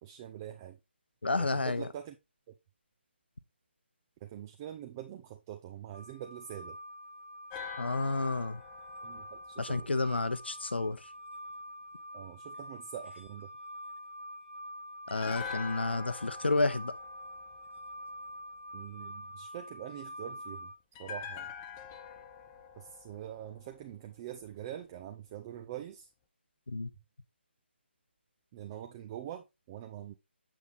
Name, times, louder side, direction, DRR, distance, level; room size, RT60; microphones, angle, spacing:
voice 1, 0.0-0.8 1.4-2.2 2.5-2.6 4.2-6.8 9.0-9.9 12.1-13.5 18.7-20.7 21.0-21.5 22.8-26.1 28.5-30.1, right 11 dB, 20° right, 0.5 m, -44 dB
voice 2, 1.2-1.9 7.8-8.6 9.6-11.1 15.1-16.9 26.7-26.9, left 3 dB, 65° left, 0.8 m, -30 dB
sound 1, 5.9-20.8, equal, 80° right, 1.3 m, -46 dB
sound 2, 7.5-10.7 15.1-18.3 20.9-24.2 24.4-24.6, left 6 dB, 15° left, 0.7 m, -45 dB
8.2 x 6.1 x 3.3 m
figure-of-eight pair, 150°, 6 cm